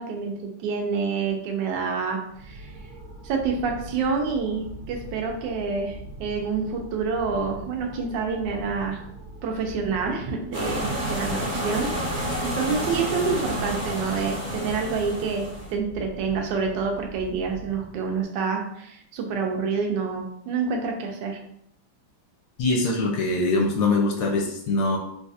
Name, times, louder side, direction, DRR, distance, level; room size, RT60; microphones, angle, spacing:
voice 1, 0.0-2.7 3.2-9.0 9.4-11.9 12.4-21.4, right 5 dB, 75° right, 2 dB, 1.2 m, -28 dB
sound 1, 2.2-18.2, right 1 dB, 60° right, 1.4 m, -42 dB
sound 2, 10.5-15.7, equal, 40° right, 0.5 m, -30 dB
voice 2, 22.6-25.0, left 2 dB, 75° left, 0 dB, 1.1 m, -23 dB
3.9 x 2.4 x 2.6 m, 0.74 s
omnidirectional pair, 2.1 m